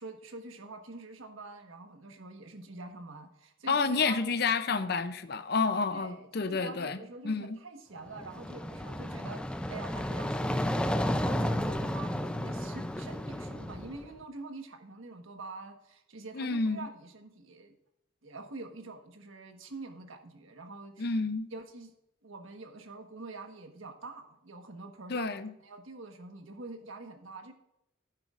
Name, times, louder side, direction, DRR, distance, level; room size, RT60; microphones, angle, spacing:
voice 1, 0.0-4.3 5.7-17.7 18.2-21.1 21.5-21.9 22.2-25.3 25.6-27.5, right 3 dB, 80° right, 1.3 m, -45 dB
voice 2, 3.7-7.6 16.3-16.9 21.0-21.5 25.1-25.5, left 4 dB, 50° left, 0.6 m, -30 dB
sound 1, 8.1-14.1, left 1 dB, 5° left, 0.4 m, -32 dB
11.5 x 9.1 x 2.5 m
head